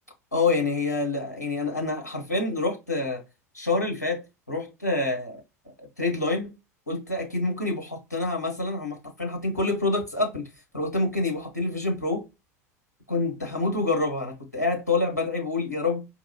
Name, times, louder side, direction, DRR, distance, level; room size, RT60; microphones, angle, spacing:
voice 1, 0.3-3.2 3.5-5.4 6.0-6.6 6.9-10.5 10.7-12.2 13.1-16.1, left 3 dB, 85° left, 1.1 m, -27 dB
4.6 x 2.9 x 2.7 m
figure-of-eight pair, 75°, 9 cm